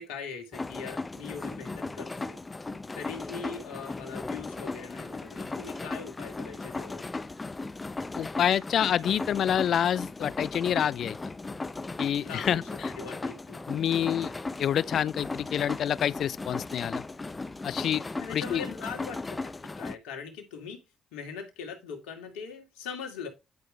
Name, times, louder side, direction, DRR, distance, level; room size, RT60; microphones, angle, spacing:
voice 1, 0.0-2.4 2.9-7.1 12.2-12.7 12.9-13.6 18.2-20.8 21.1-23.3, left 6 dB, 85° left, 2.3 m, -41 dB
sound 1, 0.5-19.9, left 3 dB, 25° left, 0.8 m, -37 dB
voice 2, 8.2-11.2 12.0-12.9 13.7-14.3 14.6-17.0 17.6-18.0 18.3-18.6, left 9 dB, 65° left, 0.4 m, -27 dB
10.5 x 5.1 x 3.2 m
supercardioid pair, 55°, 0 cm